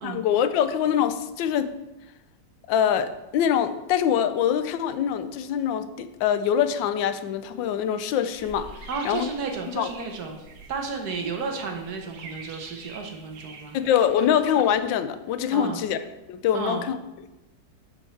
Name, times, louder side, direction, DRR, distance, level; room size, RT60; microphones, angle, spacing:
voice 1, 0.0-1.7 2.7-8.7 9.0-9.3 9.8-9.9 13.7-16.0 16.3-17.0, left 9 dB, 90° left, 11 dB, 1.3 m, -24 dB
sound 1, 8.3-14.8, right 3 dB, 75° right, 1.7 m, -45 dB
voice 2, 8.9-10.4 10.7-13.8 15.5-15.8 16.5-16.9, right 4 dB, 60° right, 3 dB, 1.5 m, -32 dB
7.2 x 4.5 x 7.0 m, 0.99 s
omnidirectional pair, 2.0 m